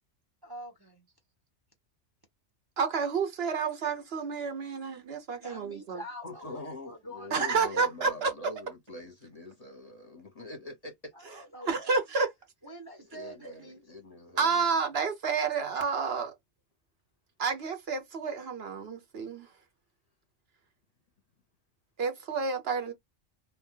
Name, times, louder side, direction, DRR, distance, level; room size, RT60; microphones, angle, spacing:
voice 1, 0.4-1.0 5.3-7.9 11.1-12.0 12.6-13.8, equal, 25° right, 0.7 m, -45 dB
voice 2, 2.8-6.0 7.3-8.3 11.7-12.3 14.4-16.3 17.4-19.5 22.0-22.9, right 5 dB, 60° right, 0.9 m, -30 dB
voice 3, 6.2-11.1 13.0-14.8, left 2 dB, 35° left, 0.9 m, -44 dB
2.7 x 2.3 x 3.7 m
omnidirectional pair, 1.2 m